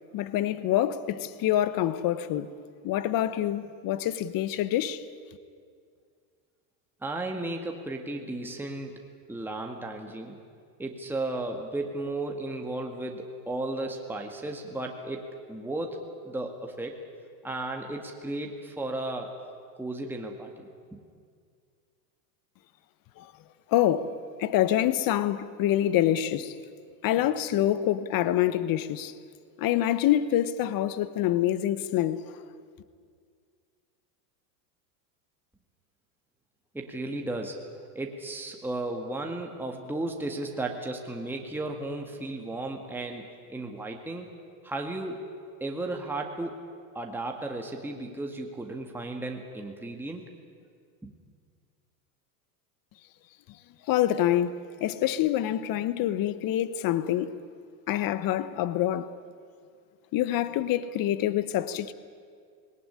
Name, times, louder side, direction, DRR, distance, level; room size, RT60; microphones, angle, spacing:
voice 1, 0.1-2.6 2.8-5.0 23.2-23.3 23.7-24.1 24.4-26.5 27.0-29.1 29.6-32.4 53.9-57.4 57.9-59.1 60.1-61.9, left 12 dB, 45° left, 1.2 m, -26 dB
voice 2, 7.0-10.4 10.8-17.0 17.4-19.3 19.8-21.0 36.7-37.6 38.0-44.3 44.6-45.2 45.6-46.6 47.0-50.3 51.0-51.1, right 2 dB, 5° right, 1.9 m, -34 dB
19.0 x 18.5 x 9.9 m
supercardioid pair, 110°, 49 cm